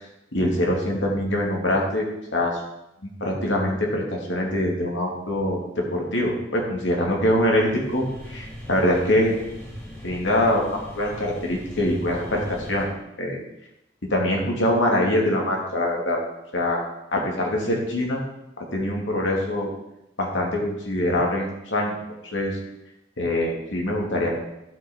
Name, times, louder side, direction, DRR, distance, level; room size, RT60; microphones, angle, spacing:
voice 1, 0.3-2.6 3.0-9.3 10.0-12.9 13.2-13.4 14.0-16.2 16.5-16.8 17.1-18.2 18.6-19.7 20.2-22.0 22.3-22.6 23.2-24.3, left 1 dB, 70° left, -1 dB, 2.5 m, -24 dB
talgo lusitaria, 7.3-12.9, equal, 15° left, 3.7 m, -40 dB
12.0 x 5.9 x 4.5 m, 0.86 s
head